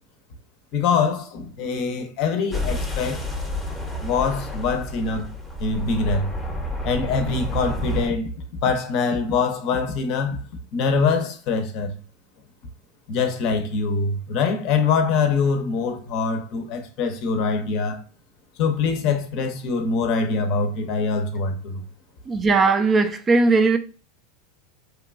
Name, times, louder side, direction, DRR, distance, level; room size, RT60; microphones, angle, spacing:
voice 1, 0.7-3.2 4.0-5.3 5.6-6.3 6.8-8.3 8.6-10.4 10.7-11.9 13.1-18.0 18.6-21.8, left 5 dB, 55° left, 0.5 m, -24 dB
sound 1, 2.5-8.1, equal, 5° left, 0.7 m, -29 dB
voice 2, 22.3-23.8, right 3 dB, 25° right, 0.3 m, -18 dB
2.8 x 2.2 x 2.4 m
hypercardioid pair, 110°, 0 cm